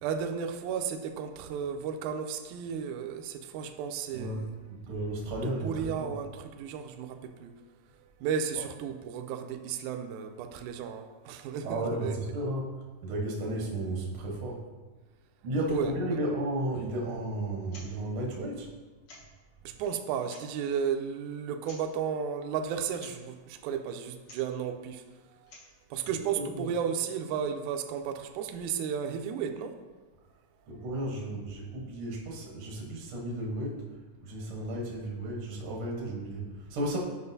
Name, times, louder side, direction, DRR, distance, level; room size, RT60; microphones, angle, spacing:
voice 1, 0.0-4.5 5.4-7.5 8.2-12.2 15.7-15.9 19.7-25.0 25.9-29.8, right 7 dB, 85° right, 6 dB, 1.8 m, -34 dB
voice 2, 4.1-4.4 4.8-6.1 11.6-12.7 13.0-14.6 15.4-18.7 26.3-26.6 30.7-33.8 34.2-37.0, right 1 dB, 65° right, -2 dB, 1.3 m, -33 dB
sound 1, 17.6-17.9 18.2-18.3 19.1-19.4 20.1-20.6 21.6-22.0 23.0-23.2 24.2-24.5 25.3-25.8, left 2 dB, 60° left, 2.1 m, -51 dB
9.6 x 5.3 x 2.7 m, 1.3 s
omnidirectional pair, 4.0 m